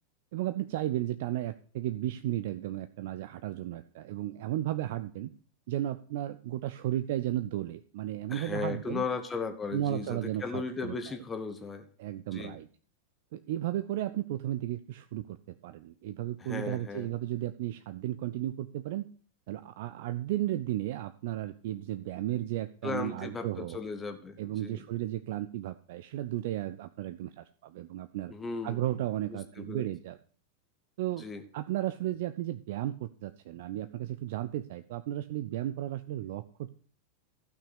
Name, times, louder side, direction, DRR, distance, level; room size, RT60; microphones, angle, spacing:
voice 1, 0.3-5.3 5.7-9.0 9.7-11.0 12.0-12.7 13.3-19.0 19.5-23.8 24.4-28.3 28.6-30.2 31.0-31.3 31.5-36.7, right 13 dB, 50° right, 12 dB, 0.5 m, -34 dB
voice 2, 8.3-11.9 12.3-12.6 16.4-17.1 22.8-24.8 28.3-28.8 29.3-29.9 31.2-31.4, left 4 dB, 15° left, 7 dB, 1.2 m, -36 dB
12.5 x 6.0 x 6.4 m, 0.43 s
figure-of-eight pair, 90°, 0 cm